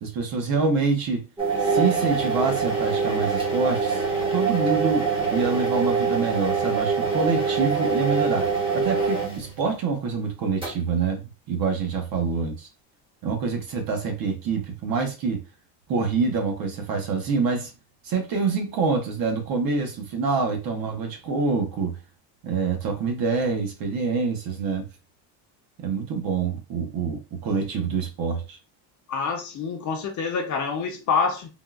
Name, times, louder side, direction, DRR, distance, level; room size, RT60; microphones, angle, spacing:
voice 1, 0.0-1.3 1.6-4.0 4.3-12.7 13.2-15.4 15.9-17.7 18.0-22.0 22.4-24.9 25.8-28.6, right 4 dB, 50° right, 0.9 m, -26 dB
sound 1, 1.4-9.7 10.6-10.7, right 5 dB, 10° right, 0.7 m, -24 dB
voice 2, 29.1-31.5, left 5 dB, 40° left, 0.6 m, -26 dB
3.7 x 2.3 x 2.3 m
cardioid pair, 165°, 46 cm